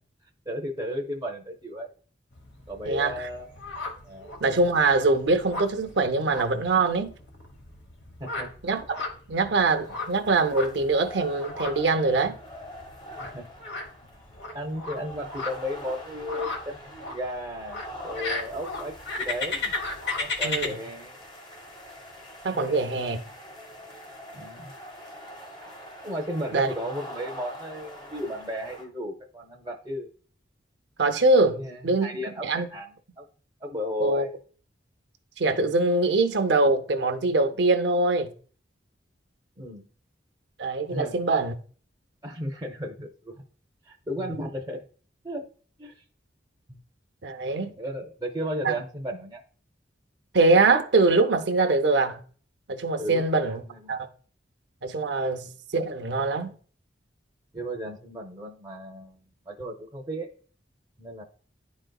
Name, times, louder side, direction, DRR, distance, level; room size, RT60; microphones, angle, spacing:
voice 1, 0.5-1.9 2.7-3.5 4.0-4.3 8.2-8.7 13.2-13.5 14.5-19.8 20.2-21.2 22.5-23.2 24.3-24.7 26.0-30.1 31.5-33.2 33.6-34.3 39.6-39.9 40.9-41.2 42.2-43.3 43.8-44.9 45.2-45.5 45.8-46.0 46.7-46.8 47.8-49.4 53.0-53.9 57.5-60.3 61.0-61.2, equal, 20° right, 0.7 m, -35 dB
sound 1, 2.3-20.7, left 3 dB, 65° left, 1.2 m, -36 dB
voice 2, 2.9-3.3 4.4-7.1 8.6-9.0 9.3-12.4 20.4-20.8 22.4-23.2 26.5-26.7 31.0-32.1 32.4-32.7 34.0-34.3 35.4-38.3 40.6-41.5 44.2-44.4 47.2-47.7 48.6-48.8 50.3-52.2 52.7-53.6 53.9-54.1 54.8-56.5, right 3 dB, 70° right, 0.7 m, -23 dB
sound 2, 9.7-28.8, equal, 30° left, 1.2 m, -44 dB
10.5 x 3.9 x 2.3 m
head